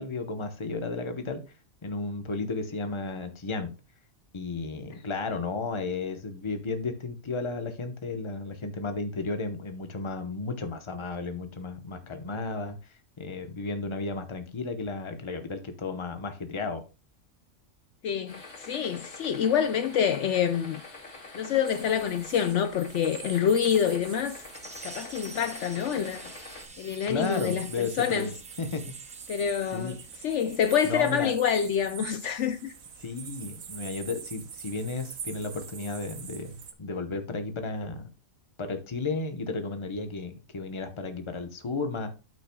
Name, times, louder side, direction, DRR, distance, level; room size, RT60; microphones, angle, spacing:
voice 1, 0.0-1.4 1.8-3.7 4.3-12.8 13.2-16.8 27.1-28.9 29.7-29.9 30.8-31.3 33.0-38.0 38.6-42.1, left 3 dB, 25° left, 0.9 m, -33 dB
voice 2, 18.0-20.8 21.3-24.4 24.8-26.3 26.8-28.3 29.3-32.7, left 8 dB, 65° left, 0.9 m, -27 dB
sound 1, 18.3-26.7, left 3 dB, 90° left, 3.1 m, -46 dB
sound 2, 21.6-36.7, right 7 dB, 90° right, 1.4 m, -45 dB
sound 3, 24.5-30.9, right 1 dB, 5° right, 0.9 m, -50 dB
12.5 x 5.7 x 2.3 m
omnidirectional pair, 1.4 m